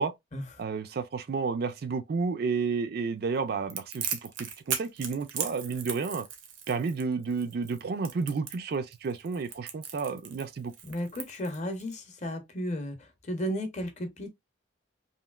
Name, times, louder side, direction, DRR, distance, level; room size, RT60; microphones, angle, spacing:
voice 1, 0.6-6.3 6.7-10.7, right 4 dB, 50° right, 0.4 m, -31 dB
Crackle, 3.7-11.9, right 8 dB, 80° right, 0.7 m, -37 dB
voice 2, 10.9-14.3, equal, 35° left, 0.7 m, -34 dB
3.1 x 2.7 x 2.2 m
head